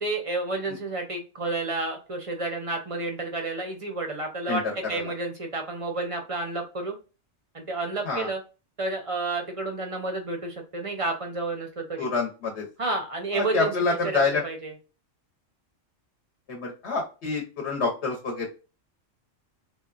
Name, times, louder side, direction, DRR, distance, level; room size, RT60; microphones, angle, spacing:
voice 1, 0.0-4.6 4.9-6.9 7.5-8.4 8.8-12.1 12.8-13.7 14.0-14.7, right 3 dB, 40° right, 3 dB, 0.5 m, -30 dB
voice 2, 4.5-5.1 8.0-8.3 12.0-12.6 13.3-14.4 16.5-18.5, left 4 dB, 60° left, 0 dB, 1.1 m, -27 dB
3.6 x 2.2 x 2.3 m, 0.32 s
omnidirectional pair, 1.3 m